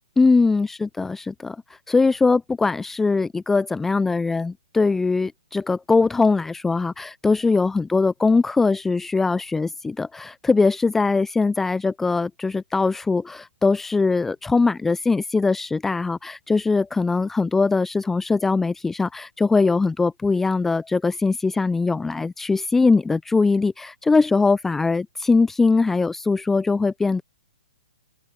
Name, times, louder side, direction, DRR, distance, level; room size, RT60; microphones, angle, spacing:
voice 1, 0.2-1.6 1.9-27.2, left 4 dB, 5° left, 0.5 m, -21 dB
open air
figure-of-eight pair, 120°, 4 cm